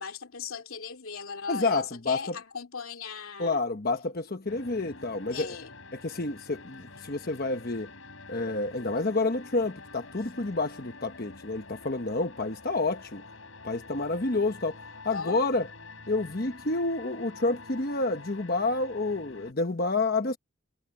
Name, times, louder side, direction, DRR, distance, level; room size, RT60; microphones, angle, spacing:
voice 1, 0.0-3.6 5.3-5.8 15.1-15.5, left 6 dB, 85° left, 2.8 m, -38 dB
voice 2, 1.5-2.4 3.4-5.5 5.9-7.9 8.3-13.2 13.6-15.7 16.1-20.4, left 3 dB, 45° left, 1.1 m, -29 dB
sound 1, 4.5-19.5, left 3 dB, 70° left, 6.8 m, -47 dB
head